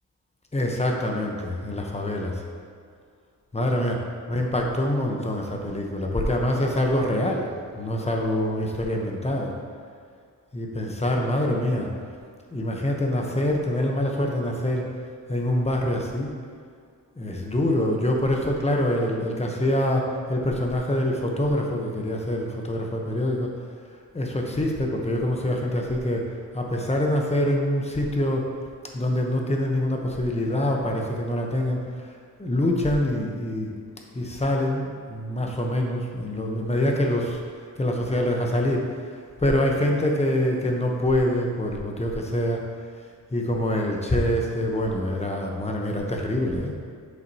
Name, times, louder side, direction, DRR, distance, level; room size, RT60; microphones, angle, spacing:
voice 1, 0.5-2.4 3.5-4.0 4.3-9.5 10.5-11.9 12.5-14.9 15.3-16.3 17.2-23.5 24.1-26.3 26.5-28.4 28.9-32.1 32.4-33.7 34.1-37.4 37.8-38.9 39.4-42.6 43.3-46.7, left 1 dB, 20° left, 0 dB, 0.9 m, -25 dB
7.6 x 5.8 x 2.8 m, 2.2 s
wide cardioid pair, 95°, 35 cm